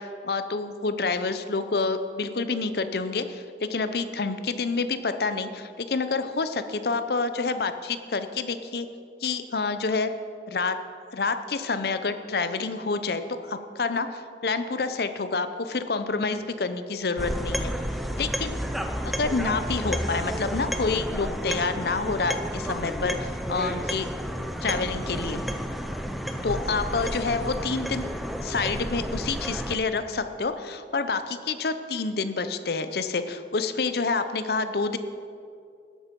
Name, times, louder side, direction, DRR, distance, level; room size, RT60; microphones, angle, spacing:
voice 1, 0.0-8.9 9.2-10.1 10.5-10.8 11.1-17.7 18.2-18.6 19.0-24.1 24.6-25.4 26.4-28.1 28.4-35.0, left 4 dB, 60° left, 10 dB, 0.6 m, -28 dB
sound 1, 17.2-29.8, equal, ahead, 0.5 m, -31 dB
12.5 x 8.2 x 5.2 m, 2.4 s
head